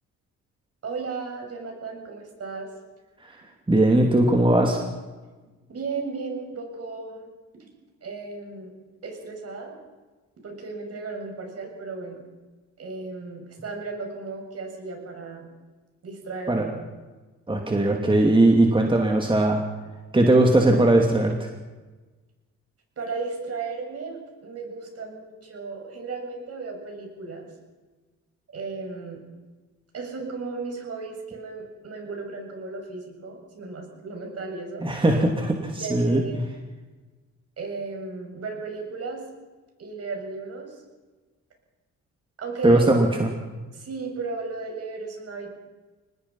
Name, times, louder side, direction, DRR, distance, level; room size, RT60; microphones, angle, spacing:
voice 1, 0.8-2.7 5.7-7.3 8.0-8.7 9.0-9.8 10.4-12.2 12.8-15.5 16.0-16.7 23.0-27.5 28.5-29.2 29.9-34.9 35.8-36.4 37.6-39.2 39.8-40.8 42.4-42.9 43.7-45.5, right 4 dB, 55° right, 2 dB, 7.1 m, -35 dB
voice 2, 3.7-4.8 16.5-16.6 17.5-19.6 20.1-21.3 34.8-36.2 42.6-43.3, right 1 dB, 15° right, 2 dB, 2.8 m, -19 dB
24.5 x 19.5 x 5.7 m, 1.3 s
cardioid pair, 90°, 30 cm